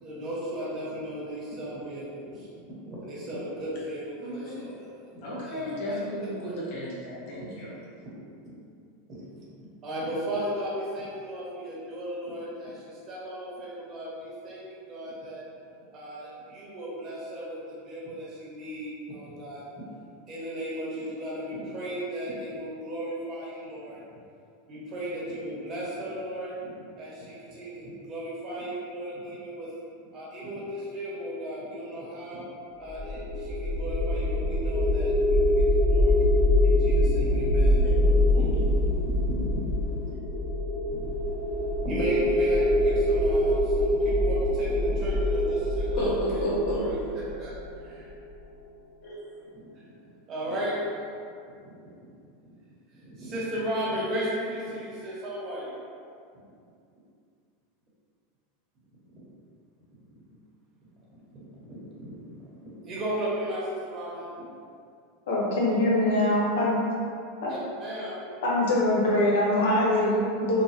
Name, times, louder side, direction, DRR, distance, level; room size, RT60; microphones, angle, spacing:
voice 1, 0.0-4.9 5.4-6.0 6.4-6.5 7.4-7.5 8.4-8.5 9.1-9.2 9.8-15.4 15.9-19.6 20.3-24.0 24.7-26.7 27.0-29.7 30.1-32.5 32.8-35.5 35.9-36.3 36.6-38.9 39.2-39.4 40.0-40.2 40.9-41.1 41.8-46.9 47.4-47.5 47.8-48.1 49.5-49.7 50.3-51.0 51.6-52.1 52.9-55.8 59.1-59.3 61.3-62.4 62.8-64.4 67.5-68.2, right 1 dB, 35° right, -7 dB, 1.0 m, -35 dB
voice 2, 4.2-4.6 5.2-7.7 37.8-38.7 46.0-46.9 49.0-49.3, equal, 60° left, -6 dB, 1.0 m, -32 dB
sound 1, 32.9-48.0, left 1 dB, 25° left, 1.0 m, -24 dB
voice 3, 65.3-66.8 67.4-67.5 68.4-70.6, left 1 dB, 85° left, -5 dB, 0.7 m, -23 dB
3.2 x 2.1 x 2.8 m, 2.4 s
supercardioid pair, 120°, 0 cm